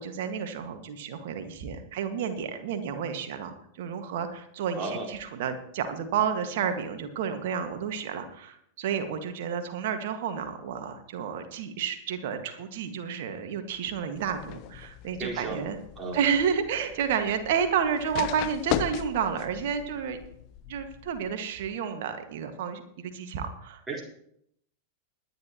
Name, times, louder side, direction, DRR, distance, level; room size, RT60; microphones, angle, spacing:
voice 1, 0.0-15.8 16.1-20.2 20.7-23.8, right 7 dB, 55° right, 7 dB, 1.8 m, -31 dB
voice 2, 4.7-5.1 15.2-15.6 16.0-16.2 23.9-24.0, right 3 dB, 15° right, -3 dB, 4.5 m, -33 dB
sound 1, 14.2-21.3, left 12 dB, 40° left, 0.9 m, -38 dB
21.0 x 10.5 x 3.0 m, 0.72 s
figure-of-eight pair, 90°, 0 cm